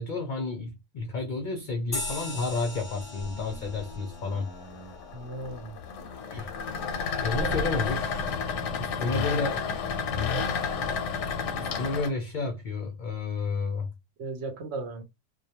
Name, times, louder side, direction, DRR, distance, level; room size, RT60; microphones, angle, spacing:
voice 1, 0.0-4.5 6.3-6.5 7.2-8.2 8.8-9.7 11.6-13.9, left 3 dB, 60° left, 0.5 m, -31 dB
sound 1, 1.9-6.8, left 2 dB, 20° left, 0.7 m, -41 dB
sound 2, 2.3-12.1, left 5 dB, 90° left, 0.9 m, -32 dB
voice 2, 5.1-5.8 7.3-7.7 14.2-15.0, right 3 dB, 70° right, 0.8 m, -36 dB
2.2 x 2.2 x 2.7 m
omnidirectional pair, 1.2 m